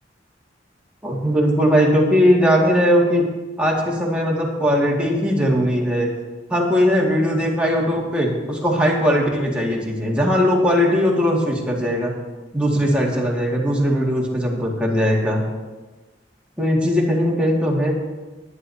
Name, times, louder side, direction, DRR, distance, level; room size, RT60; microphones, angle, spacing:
voice 1, 1.0-3.2 3.6-6.1 6.5-12.1 12.5-15.4 16.6-17.9, equal, 5° right, -3 dB, 1.9 m, -19 dB
19.0 x 9.9 x 2.7 m, 1.2 s
head